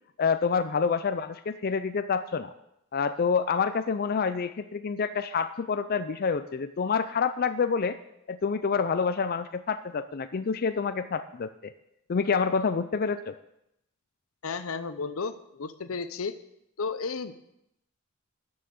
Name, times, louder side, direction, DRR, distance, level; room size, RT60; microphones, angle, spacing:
voice 1, 0.2-2.5 2.9-8.0 8.3-11.7 12.1-13.4, left 5 dB, 45° left, 10 dB, 0.4 m, -27 dB
voice 2, 14.4-16.3 16.8-17.3, left 4 dB, 85° left, 12 dB, 0.7 m, -33 dB
12.5 x 5.7 x 6.5 m, 0.81 s
head